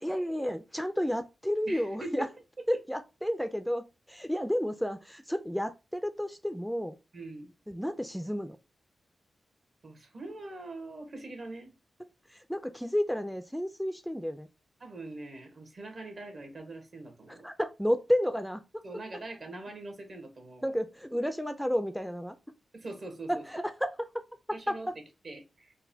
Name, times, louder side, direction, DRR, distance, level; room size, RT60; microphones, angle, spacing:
voice 1, 0.0-2.3 2.7-7.0 7.7-8.6 12.3-14.5 17.3-18.8 20.6-22.4 23.3-24.2 24.7-24.8, equal, ahead, 0.4 m, -31 dB
voice 2, 1.6-2.3 7.1-7.5 9.8-11.7 14.8-17.5 18.8-20.7 22.7-23.4 24.5-24.9 25.2-25.7, right 2 dB, 55° right, 1.1 m, -43 dB
3.9 x 2.2 x 2.7 m
cardioid pair, 55°, 0 cm